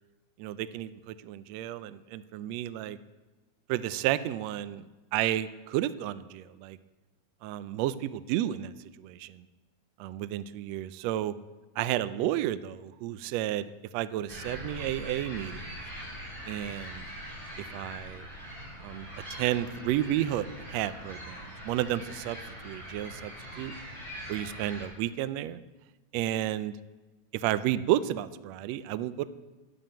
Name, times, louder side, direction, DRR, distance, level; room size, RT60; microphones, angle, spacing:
voice 1, 0.4-3.0 3.7-6.8 7.4-9.4 10.0-11.3 11.8-15.7 16.5-17.1 17.7-18.2 18.8-22.4 22.6-23.3 23.6-23.7 24.3-25.6 26.1-26.7 27.3-29.2, right 13 dB, 85° right, 14 dB, 1.5 m, -32 dB
sound 1, 14.3-24.9, equal, 10° right, 4.9 m, -42 dB
11.0 x 9.2 x 8.8 m, 1.2 s
omnidirectional pair, 3.6 m